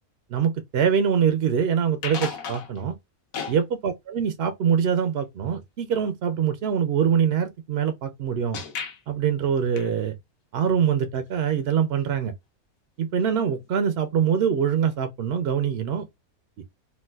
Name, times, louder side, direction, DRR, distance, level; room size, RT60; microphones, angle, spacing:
voice 1, 0.3-3.0 3.5-8.6 9.1-10.1 10.5-12.3 13.0-16.1, right 7 dB, 70° right, 0.6 m, -24 dB
sound 1, 2.0-2.9 3.3-3.6 8.5-9.0 9.8-10.2 13.2-13.3 13.6-13.7 14.9-15.0, left 6 dB, 70° left, 1.1 m, -35 dB
3.9 x 2.3 x 2.3 m
omnidirectional pair, 1.6 m